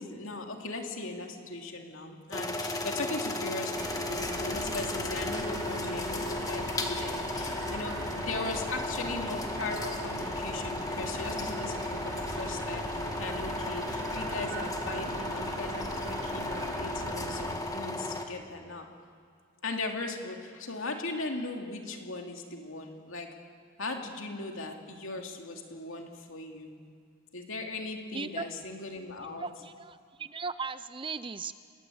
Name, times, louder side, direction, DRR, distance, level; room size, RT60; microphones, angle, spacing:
voice 1, 0.0-18.9 19.6-23.3 23.8-26.7 27.3-29.5, left 2 dB, 60° left, 2 dB, 2.8 m, -38 dB
sound 1, 2.3-18.2, left 2 dB, 15° left, 1.7 m, -35 dB
sound 2, 3.7-17.6, right 2 dB, 70° right, 2.5 m, -40 dB
voice 2, 28.1-28.5 29.4-31.5, right 4 dB, 25° right, 13 dB, 0.5 m, -37 dB
29.5 x 20.0 x 8.7 m, 2.2 s
head